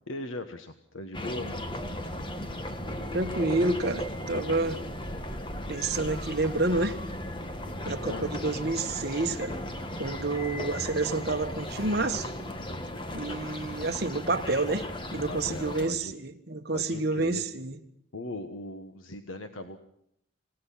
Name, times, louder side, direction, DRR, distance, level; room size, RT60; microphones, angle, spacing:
voice 1, 0.1-1.7 8.0-8.3 15.1-16.1 16.7-17.4 18.1-19.8, left 2 dB, 85° left, 1.4 m, -39 dB
sound 1, 1.1-15.9, left 1 dB, 25° left, 1.5 m, -36 dB
voice 2, 3.1-4.8 5.7-7.0 7.8-9.6 10.0-12.3 13.1-17.8, right 2 dB, 50° right, 1.6 m, -29 dB
27.5 x 18.5 x 5.8 m
head